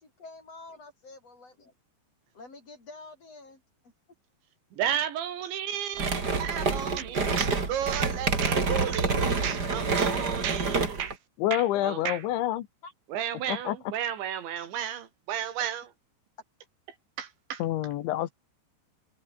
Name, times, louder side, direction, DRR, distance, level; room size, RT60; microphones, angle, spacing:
voice 1, 0.0-1.7 2.3-3.9 11.7-11.8 12.8-12.9, left 3 dB, 35° left, 8.1 m, -48 dB
voice 2, 4.8-11.2 11.5-12.2 13.1-15.8 17.2-17.6, right 9 dB, 80° right, 5.0 m, -33 dB
sound 1, 6.0-11.1, right 4 dB, 25° right, 3.2 m, -27 dB
voice 3, 11.4-12.7 13.5-13.8 17.6-18.3, left 14 dB, 85° left, 3.9 m, -27 dB
omnidirectional pair, 5.2 m